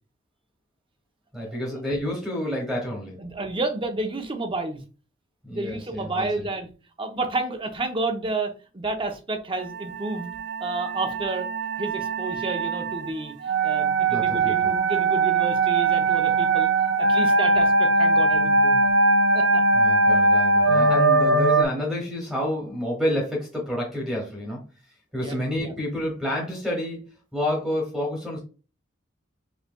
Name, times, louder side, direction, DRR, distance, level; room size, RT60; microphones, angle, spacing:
voice 1, 1.3-3.2 5.4-6.5 14.1-14.7 19.7-24.6 25.1-28.4, left 1 dB, ahead, -1 dB, 1.3 m, -29 dB
voice 2, 3.2-4.8 5.5-6.7 7.0-10.3 10.6-11.5 11.8-13.3 13.6-16.7 17.0-18.8 19.3-19.6 25.2-25.4 25.6-25.7, right 2 dB, 25° right, 5 dB, 0.7 m, -30 dB
sound 1, 9.6-21.6, right 2 dB, 60° right, 0.5 m, -21 dB
5.2 x 3.2 x 2.3 m, 0.34 s
head